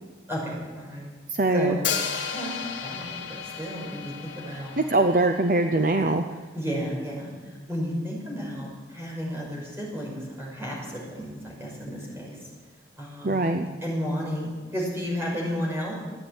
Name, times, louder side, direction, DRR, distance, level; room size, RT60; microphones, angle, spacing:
voice 1, 0.3-1.1 1.5-1.9 2.3-4.8 6.5-12.4 13.0-13.4 13.8-16.0, equal, 15° right, -4 dB, 5.8 m, -32 dB
voice 2, 1.3-1.8 4.9-6.2 13.2-13.7, right 2 dB, 45° right, 6 dB, 0.7 m, -22 dB
Hi-hat, 1.8-5.8, left 7 dB, 85° left, 1.8 m, -33 dB
15.5 x 9.8 x 9.1 m, 1.3 s
head